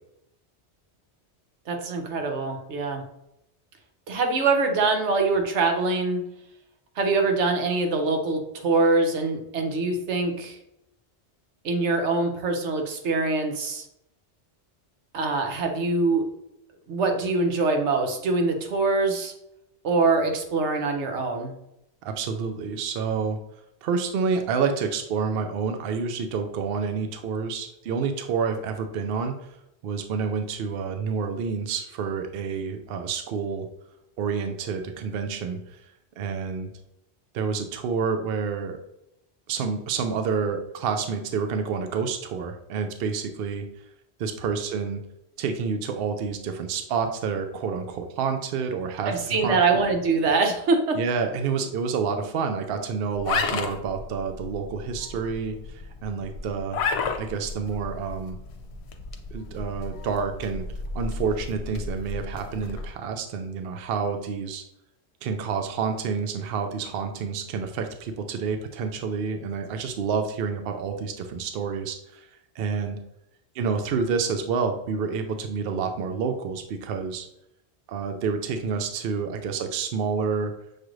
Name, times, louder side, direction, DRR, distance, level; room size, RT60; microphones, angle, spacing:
voice 1, 1.7-3.0 4.1-6.2 7.0-10.6 11.6-13.8 15.1-16.2 16.9-19.3 19.8-21.5 49.1-51.0, right 3 dB, 90° right, 4 dB, 1.1 m, -24 dB
voice 2, 22.0-23.4 23.8-29.5 29.8-33.7 34.2-35.6 36.2-36.7 37.3-38.8 39.5-43.6 44.2-45.0 45.4-49.6 50.9-56.8 57.2-58.4 59.3-60.6 60.9-64.6 65.2-72.3 72.6-73.0 73.5-77.3 77.9-80.5, right 5 dB, 65° right, 6 dB, 0.7 m, -28 dB
sound 1, 53.1-62.9, left 4 dB, 75° left, 0.9 m, -33 dB
6.5 x 2.5 x 3.1 m, 0.81 s
omnidirectional pair, 1.1 m